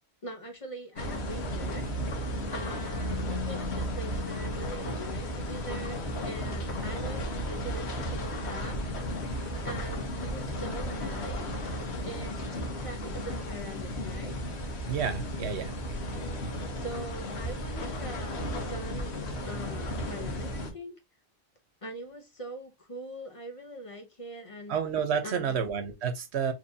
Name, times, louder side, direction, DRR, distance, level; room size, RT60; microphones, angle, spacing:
voice 1, 0.2-2.2 2.5-9.2 9.6-11.5 12.0-14.4 16.7-19.2 19.4-21.0 21.8-24.8 25.2-25.6, right 1 dB, 35° left, 0.8 m, -42 dB
sound 1, 1.0-20.7, equal, 85° left, 1.3 m, -34 dB
voice 2, 14.9-15.8 24.7-26.5, right 7 dB, 85° right, 1.0 m, -30 dB
4.5 x 2.9 x 2.6 m
omnidirectional pair, 1.1 m